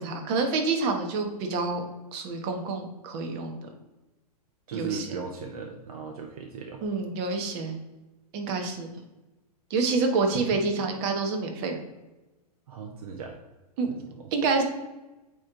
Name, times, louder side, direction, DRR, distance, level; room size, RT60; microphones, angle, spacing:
voice 1, 0.0-3.5 4.7-5.1 6.8-7.8 8.3-8.9 9.7-11.8 13.8-13.9 14.3-14.6, right 4 dB, 45° right, 4 dB, 1.3 m, -27 dB
voice 2, 4.7-6.8 10.3-10.6 12.7-13.4 13.9-14.3, right 5 dB, 65° right, 2 dB, 0.9 m, -37 dB
8.4 x 3.2 x 3.8 m, 1.1 s
hypercardioid pair, 130°, 20 cm